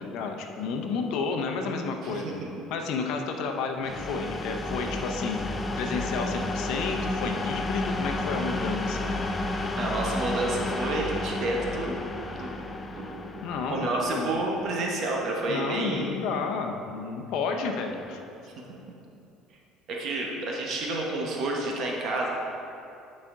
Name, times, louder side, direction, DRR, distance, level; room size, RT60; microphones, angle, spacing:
voice 1, 0.0-2.4 2.7-9.1 13.4-14.3 15.5-18.2, left 4 dB, 70° left, 4 dB, 0.7 m, -31 dB
voice 2, 2.0-2.5 9.8-12.0 12.3-12.6 13.0-13.2 13.7-16.1 19.9-22.3, right 2 dB, 50° right, -2 dB, 1.0 m, -30 dB
sound 1, 3.8-15.5, left 2 dB, 20° left, 0.4 m, -32 dB
9.6 x 4.2 x 3.7 m, 2.7 s
cardioid pair, 125°, 0 cm